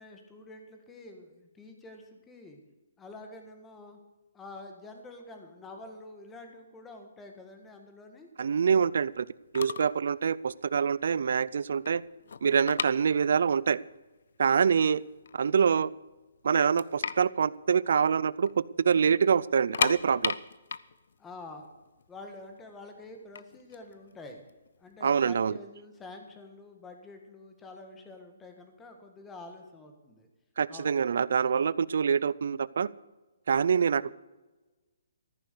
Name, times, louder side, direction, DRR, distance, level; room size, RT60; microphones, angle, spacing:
voice 1, 0.0-2.6 3.0-4.0 4.3-8.3 21.2-21.7 22.1-24.4 24.8-30.3 30.7-31.0, left 2 dB, 10° left, 5 dB, 1.5 m, -47 dB
voice 2, 8.4-9.3 9.5-12.0 12.4-13.8 14.4-15.0 15.3-15.9 16.4-18.5 18.8-20.3 25.0-25.5 30.6-32.9 33.5-34.2, right 6 dB, 60° right, 21 dB, 0.4 m, -25 dB
sound 1, 9.3-9.4 9.5-10.0 10.3-10.5 11.0-11.1 11.4-13.6 13.9-14.0 14.7-14.8 15.1-15.8 16.2-16.3 16.5-18.5 18.8-18.9 19.5-22.4 23.1-24.9, left 6 dB, 65° left, 0.6 m, -34 dB
14.0 x 9.6 x 6.7 m, 1.1 s
hypercardioid pair, 170°, 0 cm